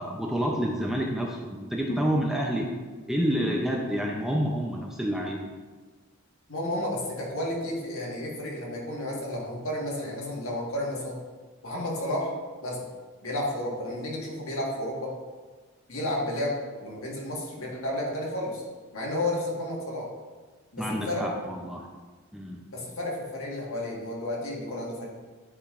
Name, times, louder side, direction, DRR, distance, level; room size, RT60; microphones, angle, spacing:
voice 1, 0.0-2.7 3.1-5.4 20.8-21.9 22.3-22.7, equal, ahead, -1 dB, 0.5 m, -28 dB
voice 2, 6.5-11.2 11.6-12.9 13.2-15.1 15.9-18.6 18.9-20.1 20.7-21.3 22.7-25.1, left 1 dB, 70° left, -3 dB, 1.6 m, -32 dB
9.6 x 5.0 x 2.5 m, 1.4 s
head